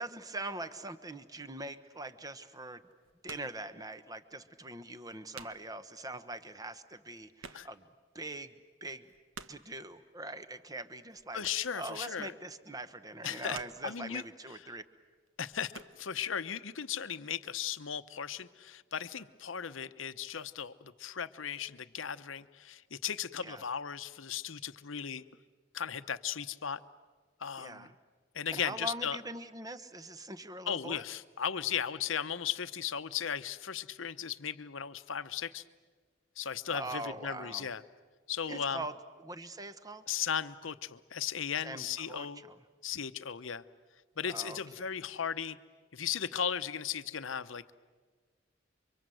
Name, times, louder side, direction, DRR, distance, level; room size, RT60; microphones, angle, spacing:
voice 1, 0.0-2.8 3.2-7.9 8.1-8.5 8.8-9.0 9.5-14.8 23.4-23.6 27.6-27.9 28.5-31.0 36.7-37.7 38.5-38.9 39.2-40.0 41.6-42.5 44.3-44.6, right 2 dB, 20° right, 11 dB, 1.1 m, -42 dB
sound 1, 1.4-1.7 2.8-3.6 4.0-4.1 4.7-4.8 5.0-5.8 6.1-6.2 6.4-6.5 6.7-8.0 8.4-8.5 8.8-9.8 11.1-11.9 12.2-12.5 13.1-14.1 14.7-14.9 15.3-16.0, right 5 dB, 80° right, 1.2 m, -51 dB
voice 2, 11.3-12.3 13.2-13.6 13.8-14.2 14.7-14.8 15.4-25.2 25.7-26.8 27.4-27.9 28.3-29.2 30.7-35.6 36.4-37.8 38.3-38.8 40.1-42.4 42.8-43.6 44.2-45.6 45.9-47.8, left 8 dB, 75° left, 12 dB, 0.8 m, -36 dB
29.5 x 24.5 x 7.8 m, 1.5 s
head